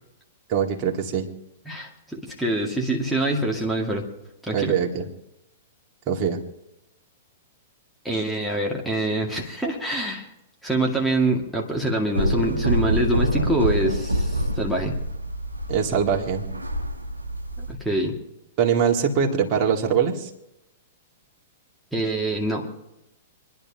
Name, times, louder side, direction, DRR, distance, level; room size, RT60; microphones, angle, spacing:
voice 1, 0.5-1.3 4.5-5.1 6.1-6.4 15.7-16.4 18.6-20.3, right 7 dB, 35° right, 1 dB, 2.1 m, -22 dB
voice 2, 1.7-4.1 4.5-4.8 8.0-10.3 10.6-15.0 17.7-18.2 21.9-22.7, right 1 dB, ahead, -2 dB, 2.1 m, -25 dB
sound 1, 12.1-17.7, right 1 dB, 85° right, 1.2 m, -26 dB
27.0 x 11.0 x 2.9 m, 0.87 s
figure-of-eight pair, 105°, 0 cm